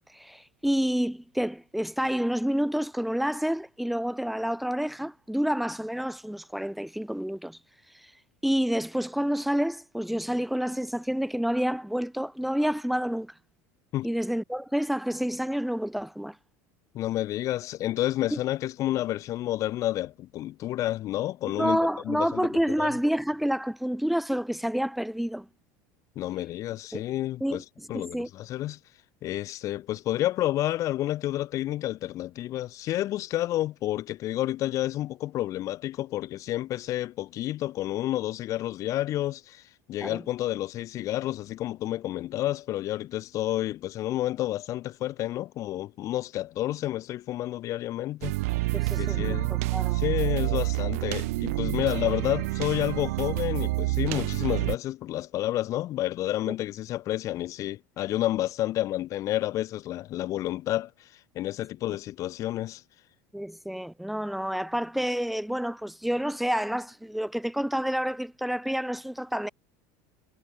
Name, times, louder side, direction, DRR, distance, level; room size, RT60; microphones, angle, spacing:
voice 1, 0.1-7.6 7.9-8.1 8.4-13.3 14.0-16.4 21.6-25.5 26.9-27.0 27.4-27.6 27.9-28.3 40.0-40.2 48.7-50.0 56.5-56.6 63.3-69.5, equal, ahead, 3.8 m, -29 dB
voice 2, 16.9-21.8 22.1-22.5 22.8-22.9 26.2-28.8 29.2-39.6 39.9-48.4 49.0-49.5 49.9-60.9 61.4-62.8, left 14 dB, 45° left, 6.8 m, -30 dB
sound 1, 48.2-54.8, right 22 dB, 85° right, 2.7 m, -28 dB
supercardioid pair, 145°, 8 cm